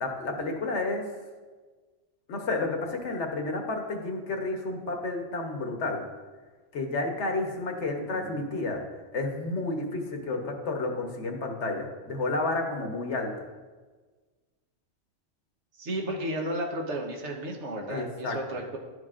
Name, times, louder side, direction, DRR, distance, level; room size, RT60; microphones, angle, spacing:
voice 1, 0.0-1.0 2.3-6.0 6.7-8.8 9.1-13.3 17.9-18.4, left 2 dB, 65° left, 3 dB, 1.3 m, -31 dB
voice 2, 15.8-18.8, right 1 dB, 65° right, 1 dB, 1.3 m, -33 dB
11.5 x 6.4 x 2.5 m, 1.4 s
omnidirectional pair, 1.3 m